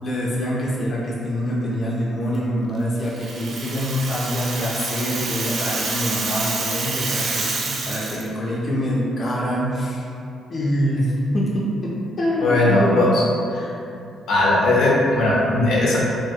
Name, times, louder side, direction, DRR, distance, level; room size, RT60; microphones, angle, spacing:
voice 1, 0.0-10.0 10.5-13.0, equal, 40° left, -5 dB, 0.5 m, -25 dB
Rattle (instrument), 3.0-8.3, right 3 dB, 55° right, 0.4 m, -28 dB
voice 2, 12.4-13.1 13.5-13.6 14.3-16.0, left 2 dB, 85° left, -5 dB, 0.6 m, -18 dB
2.9 x 2.3 x 2.7 m, 2.6 s
cardioid pair, 95°, 0 cm